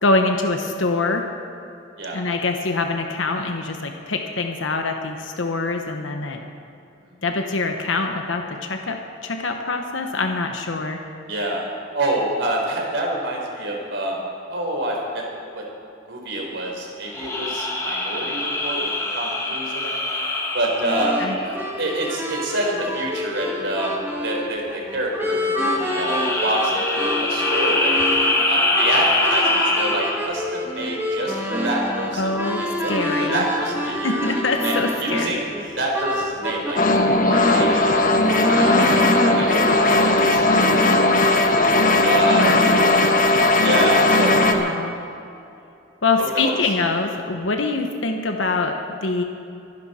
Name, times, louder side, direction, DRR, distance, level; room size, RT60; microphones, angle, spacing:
voice 1, 0.0-1.3 2.1-6.4 7.2-11.0 21.2-21.4 32.2-33.4 34.0-35.4 42.1-42.9 44.5-45.0 46.0-49.2, left 3 dB, 90° left, 4 dB, 1.1 m, -24 dB
voice 2, 11.3-11.6 11.9-14.2 14.5-15.2 15.5-15.6 16.1-19.9 20.5-21.1 21.4-28.0 28.5-34.2 34.6-35.5 35.8-36.8 37.1-38.2 38.5-39.0 39.4-41.3 42.0-42.8 43.6-44.4 46.1-46.6, right 1 dB, 70° right, -1 dB, 3.9 m, -27 dB
sound 1, 17.1-21.9 25.7-30.4, left 2 dB, 15° left, 1.4 m, -24 dB
sound 2, 20.8-36.7 37.1-40.0, equal, 10° right, 1.7 m, -27 dB
sound 3, 36.8-44.5, left 2 dB, 45° left, 1.2 m, -17 dB
24.5 x 11.0 x 4.4 m, 2.7 s
head